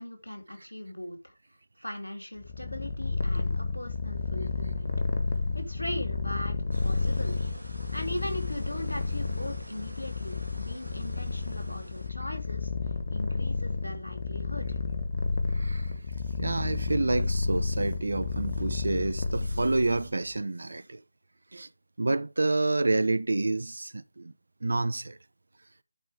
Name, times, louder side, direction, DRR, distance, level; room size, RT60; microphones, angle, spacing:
voice 1, 0.0-1.3 1.8-4.9 5.3-7.4 7.9-12.7 13.1-14.8, left 1 dB, 80° left, 3.1 m, -39 dB
Purr, 2.4-20.1, left 3 dB, 45° left, 1.4 m, -31 dB
sound 1, 6.7-12.1, right 1 dB, 80° right, 1.9 m, -48 dB
voice 2, 15.5-15.9 16.4-21.0 21.5-21.7 22.0-24.3 24.6-25.2, right 2 dB, 60° right, 0.7 m, -28 dB
10.5 x 5.0 x 5.0 m
figure-of-eight pair, 155°, 0 cm